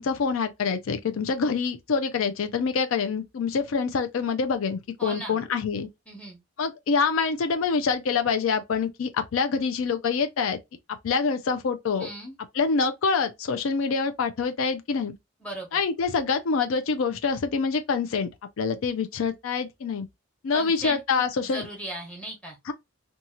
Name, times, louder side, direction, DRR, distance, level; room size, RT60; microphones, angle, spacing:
voice 1, 0.0-5.9 6.6-10.6 11.0-12.1 12.5-15.1 15.7-18.3 18.6-20.1 20.4-21.7 22.7-22.8, left 5 dB, 80° left, 0.4 m, -26 dB
voice 2, 5.0-5.4 6.1-6.4 12.0-12.4 15.4-15.8 20.5-22.6, right 1 dB, 5° left, 0.9 m, -37 dB
2.7 x 2.3 x 2.8 m
head